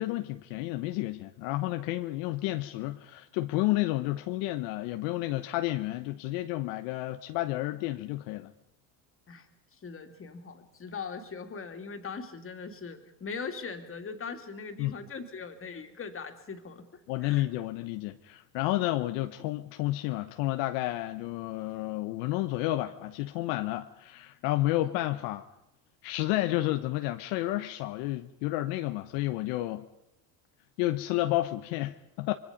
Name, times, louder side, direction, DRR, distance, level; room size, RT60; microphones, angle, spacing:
voice 1, 0.0-8.5 14.8-14.9 17.1-25.4 26.0-29.9 30.8-32.3, left 16 dB, 70° left, 1.0 m, -31 dB
voice 2, 9.8-16.9 17.2-17.5 24.7-25.0, left 5 dB, 30° left, 2.9 m, -40 dB
25.5 x 22.5 x 5.3 m
supercardioid pair, 90°, 44 cm